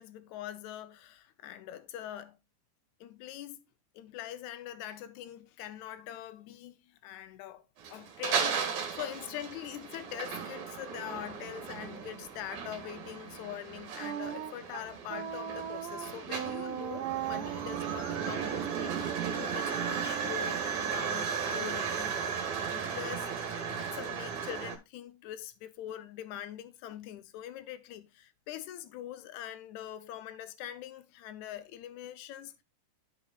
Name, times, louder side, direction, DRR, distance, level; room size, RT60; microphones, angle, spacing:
voice 1, 0.0-2.4 3.0-3.6 3.9-22.2 22.7-32.6, left 12 dB, 80° left, 1.8 m, -43 dB
sound 1, 7.8-24.8, right 7 dB, 60° right, 2.4 m, -36 dB
Wind instrument woodwind instrument, 14.0-20.9, right 11 dB, 80° right, 2.2 m, -39 dB
14.0 x 5.0 x 2.4 m
omnidirectional pair, 4.0 m